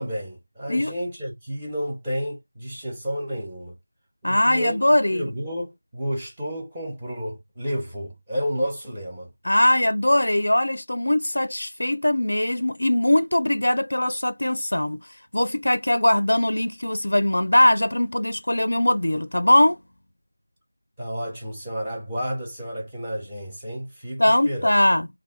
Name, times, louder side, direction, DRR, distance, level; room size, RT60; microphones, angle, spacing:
voice 1, 0.0-3.7 4.2-4.8 5.1-9.3 21.0-24.7, equal, 15° right, 1.1 m, -31 dB
voice 2, 4.2-5.3 9.4-15.0 15.3-19.8 24.2-25.1, left 1 dB, 70° left, 0.4 m, -21 dB
3.5 x 2.6 x 3.8 m
figure-of-eight pair, 170°, 0 cm